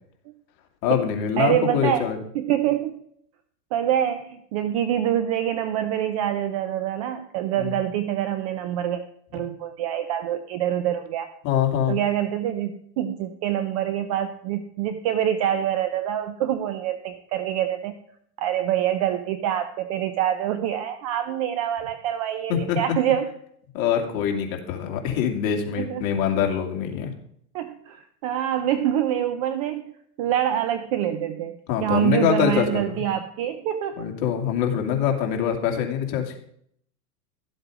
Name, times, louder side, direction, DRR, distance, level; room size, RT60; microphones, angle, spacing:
voice 1, 0.8-2.2 7.6-7.8 11.4-12.0 22.5-22.8 23.7-27.1 31.7-33.0 34.0-36.4, left 8 dB, 45° left, 3 dB, 2.5 m, -24 dB
voice 2, 1.4-2.1 2.3-2.9 3.7-9.0 9.3-11.3 11.9-17.9 18.4-23.3 25.8-26.1 27.5-29.9 30.2-34.0, right 11 dB, 25° right, 9 dB, 0.4 m, -25 dB
13.0 x 7.9 x 5.0 m, 0.67 s
hypercardioid pair, 125°, 49 cm